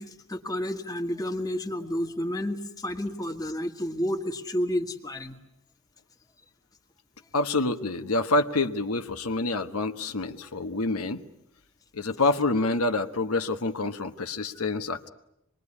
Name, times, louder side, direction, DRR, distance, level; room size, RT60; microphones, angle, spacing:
voice 1, 0.0-5.4, left 1 dB, 15° left, 5 dB, 1.6 m, -31 dB
voice 2, 7.3-11.2 11.9-15.1, left 2 dB, 85° left, 8 dB, 1.2 m, -27 dB
26.0 x 21.5 x 9.8 m, 0.83 s
head